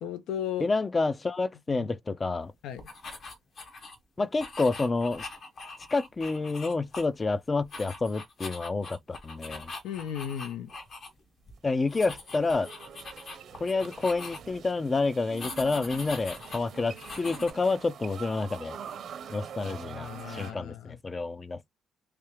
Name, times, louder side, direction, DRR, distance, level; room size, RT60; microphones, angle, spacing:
voice 1, 0.0-0.6 1.7-1.9 2.6-2.8 9.8-10.7 19.6-21.0, left 9 dB, 85° left, 0.6 m, -36 dB
voice 2, 0.6-2.5 4.2-5.2 5.9-9.7 11.6-12.7 13.6-18.8 19.3-21.6, left 3 dB, 30° left, 0.4 m, -29 dB
sound 1, 2.8-4.0 4.4-7.3 7.6-11.1 11.4-11.5 11.9-14.6 15.4-17.5, left 3 dB, 55° left, 1.1 m, -42 dB
sound 2, 11.6-20.5, right 8 dB, 65° right, 0.7 m, -45 dB
3.3 x 2.8 x 3.1 m
cardioid pair, 90°, 0 cm